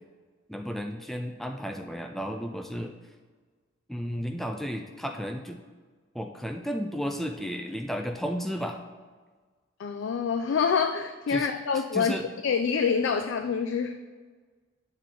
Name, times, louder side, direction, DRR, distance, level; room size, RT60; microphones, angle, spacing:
voice 1, 0.5-2.9 3.9-5.6 6.1-8.8 11.3-11.5 11.9-12.3, equal, ahead, 4 dB, 0.3 m, -33 dB
voice 2, 9.8-12.2 12.4-14.0, left 6 dB, 80° left, 8 dB, 0.4 m, -26 dB
9.1 x 6.4 x 3.7 m, 1.4 s
head